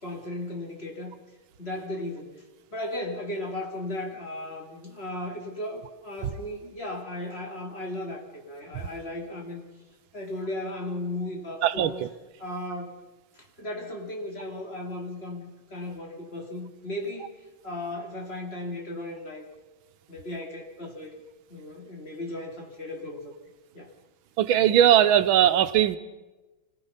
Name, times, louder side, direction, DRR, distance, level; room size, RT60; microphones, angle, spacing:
voice 1, 0.0-1.2 1.6-2.4 2.7-9.7 10.1-12.0 12.4-13.0 13.3-17.3 17.6-19.5 20.1-21.1 21.5-23.3 23.7-23.9, left 1 dB, 30° left, 0 dB, 3.1 m, -36 dB
voice 2, 24.4-26.0, right 10 dB, 90° right, 12 dB, 1.7 m, -19 dB
25.5 x 18.0 x 5.7 m, 1.1 s
omnidirectional pair, 2.2 m